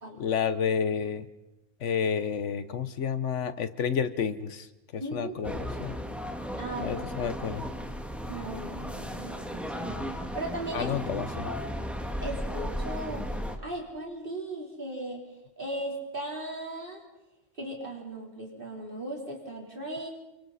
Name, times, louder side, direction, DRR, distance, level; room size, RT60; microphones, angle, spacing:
voice 1, 0.2-1.3 1.8-4.7 4.9-6.0 6.8-7.6 10.7-11.5, left 7 dB, 85° left, 12 dB, 1.3 m, -30 dB
voice 2, 5.0-5.5 6.6-7.0 8.3-10.1 10.3-11.0 11.4-11.8 12.2-13.2 13.6-15.3 15.6-17.0 17.6-20.1, right 1 dB, 45° right, -1 dB, 4.1 m, -37 dB
sound 1, 5.4-13.6, equal, ahead, 1.7 m, -35 dB
29.0 x 23.5 x 4.2 m, 0.98 s
omnidirectional pair, 1.2 m